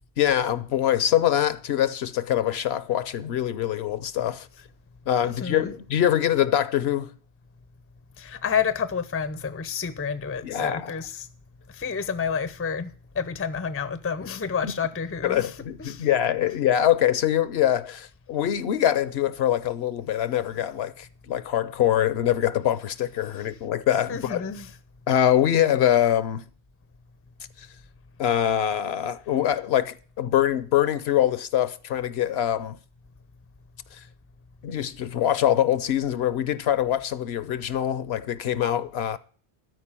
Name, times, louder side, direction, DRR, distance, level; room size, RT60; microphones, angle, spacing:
voice 1, 0.2-4.5 5.1-7.1 10.4-10.9 14.6-14.7 15.2-24.5 25.1-26.5 27.6-27.7 28.2-32.8 33.9-34.0 34.6-39.2, left 11 dB, 75° left, 0.9 m, -24 dB
voice 2, 5.2-5.7 8.2-11.3 11.7-12.9 13.1-15.5 15.8-16.1 24.1-24.7, left 6 dB, 20° left, 0.4 m, -29 dB
12.5 x 4.9 x 8.8 m
omnidirectional pair, 1.1 m